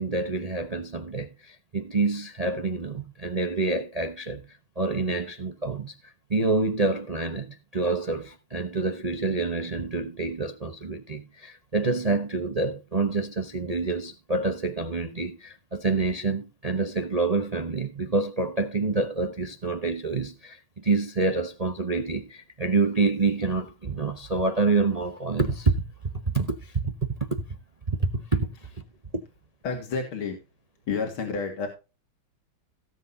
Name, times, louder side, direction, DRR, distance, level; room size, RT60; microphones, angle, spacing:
voice 1, 0.0-4.4 4.8-25.7 26.3-27.5 27.9-28.5 29.1-29.2, right 3 dB, 35° right, 0.6 m, -27 dB
voice 2, 29.6-30.4 30.9-31.7, left 5 dB, 80° left, 3.0 m, -30 dB
17.0 x 7.9 x 2.7 m
omnidirectional pair, 2.3 m